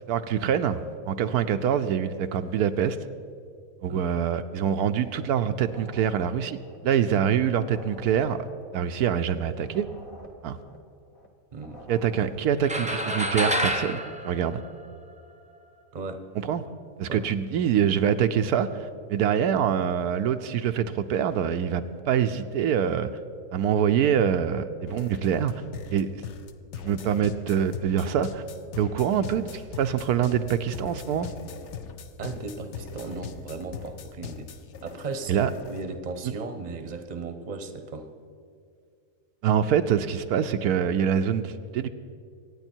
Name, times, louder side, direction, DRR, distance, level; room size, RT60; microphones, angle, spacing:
voice 1, 0.1-3.0 3.8-6.6 6.8-8.4 8.7-9.9 10.4-10.6 11.9-14.6 16.4-16.6 17.0-23.1 23.5-25.5 25.9-26.2 26.8-28.4 28.8-31.3 35.3-35.5 36.2-36.3 39.4-41.9, right 8 dB, 80° right, 9 dB, 1.1 m, -25 dB
sound 1, 5.5-7.3 7.5-11.3 11.5-12.9, equal, 35° left, 1.5 m, -48 dB
voice 2, 11.5-11.9 15.9-16.3 17.1-17.2 32.2-34.5 34.8-38.1, right 3 dB, 30° right, 8 dB, 0.9 m, -36 dB
sound 2, 12.6-15.2, equal, 5° right, 0.6 m, -28 dB
sound 3, 24.9-36.0, left 6 dB, 55° left, 0.9 m, -41 dB
24.0 x 9.5 x 4.5 m, 2.3 s
omnidirectional pair, 1.6 m